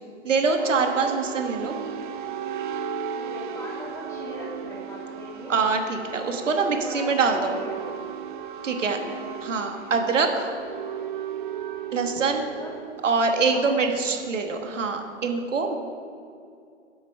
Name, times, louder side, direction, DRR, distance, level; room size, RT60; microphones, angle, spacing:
voice 1, 0.2-1.7 5.5-7.6 8.6-9.0 9.4-10.5 11.9-12.4 13.0-15.7, right 4 dB, 80° right, 4 dB, 1.4 m, -24 dB
sound 1, 0.6-14.8, right 7 dB, 40° right, 0.7 m, -36 dB
voice 2, 3.1-5.6 6.5-7.9 8.7-9.2 12.2-12.8 13.5-14.0, left 1 dB, 10° left, -5 dB, 2.0 m, -40 dB
8.5 x 8.0 x 5.4 m, 2.4 s
hypercardioid pair, 140°, 37 cm